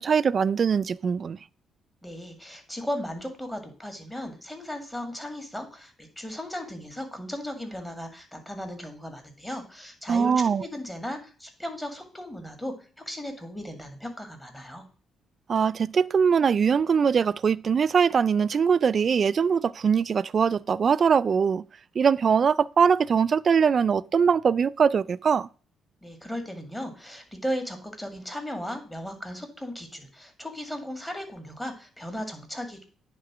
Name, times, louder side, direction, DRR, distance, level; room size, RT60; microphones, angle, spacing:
voice 1, 0.0-1.4 10.1-10.7 15.5-21.6 22.0-25.5, right 6 dB, 45° right, 0.3 m, -22 dB
voice 2, 2.0-12.7 13.1-14.9 26.0-32.8, equal, 10° left, 2.0 m, -36 dB
9.4 x 3.7 x 6.0 m
cardioid pair, 90°, 0 cm